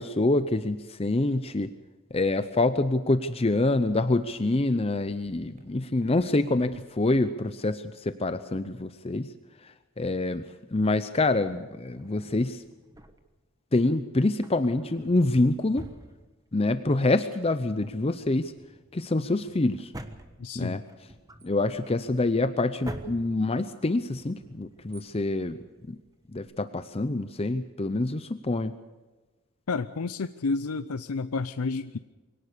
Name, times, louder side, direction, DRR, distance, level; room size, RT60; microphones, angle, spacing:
voice 1, 0.0-1.7 2.1-9.3 9.6-10.4 10.7-12.6 13.7-15.9 16.5-18.5 18.9-19.9 20.6-20.8 21.4-25.6 25.9-26.0 26.3-28.7, left 2 dB, 25° left, 11 dB, 0.6 m, -26 dB
sound 1, 3.8-4.0 4.3-4.8 5.3-7.3, equal, 35° right, 4.9 m, -56 dB
Drawer open or close, 11.9-13.5 14.3-16.8 17.0-17.1 17.6-26.4, right 1 dB, 15° right, 1.3 m, -47 dB
voice 2, 20.4-20.8 29.7-32.0, left 4 dB, 85° left, 11 dB, 0.6 m, -30 dB
23.5 x 18.0 x 6.7 m, 1.2 s
head